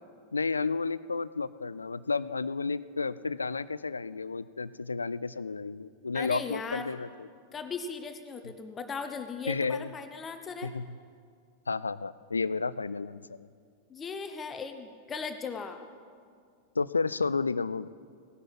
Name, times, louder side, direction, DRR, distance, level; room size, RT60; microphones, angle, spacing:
voice 1, 0.3-7.3 9.5-9.9 10.6-10.9 11.7-13.2 16.8-17.9, left 4 dB, 75° left, 18 dB, 0.3 m, -31 dB
voice 2, 6.1-6.9 7.5-10.7 13.9-15.8, left 5 dB, 20° left, 8 dB, 0.9 m, -38 dB
17.5 x 11.0 x 6.0 m, 2.1 s
figure-of-eight pair, 90°, 0 cm